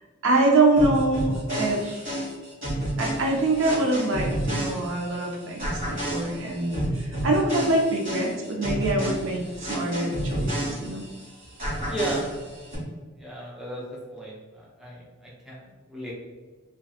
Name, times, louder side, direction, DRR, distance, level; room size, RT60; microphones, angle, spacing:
voice 1, 0.2-2.2 3.0-11.0, right 2 dB, 70° right, 0 dB, 0.5 m, -24 dB
sound 1, 0.8-5.2 5.6-11.2 11.6-12.8, right 1 dB, 40° right, 1.2 m, -30 dB
voice 2, 11.9-12.2 13.2-13.8 14.1-16.1, right 1 dB, ahead, -6 dB, 0.5 m, -34 dB
2.6 x 2.3 x 2.4 m, 1.3 s
head